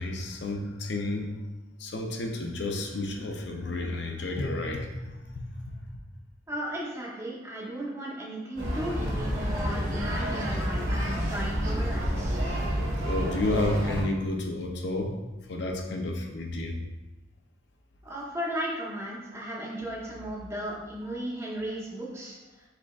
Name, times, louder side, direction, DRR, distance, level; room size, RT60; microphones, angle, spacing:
voice 1, 0.0-1.4 1.8-5.7 13.0-15.2 15.5-16.8, left 2 dB, 65° left, 3 dB, 0.5 m, -31 dB
voice 2, 6.5-12.4 18.0-22.4, equal, 15° right, -4 dB, 0.7 m, -35 dB
sound 1, 8.6-14.0, equal, 90° right, 1.3 m, -29 dB
4.9 x 3.3 x 2.3 m, 1.1 s
head